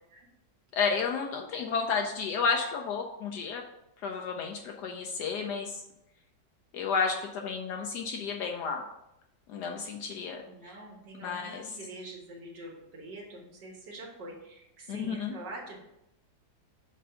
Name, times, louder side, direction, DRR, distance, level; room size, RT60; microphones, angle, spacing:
voice 1, 0.7-3.6 4.0-5.8 6.7-8.8 9.5-10.7 11.2-11.8 14.9-15.4, left 5 dB, 75° left, 2 dB, 1.1 m, -32 dB
voice 2, 10.5-15.8, right 2 dB, 75° right, -1 dB, 2.0 m, -45 dB
6.6 x 2.6 x 5.6 m, 0.86 s
omnidirectional pair, 1.9 m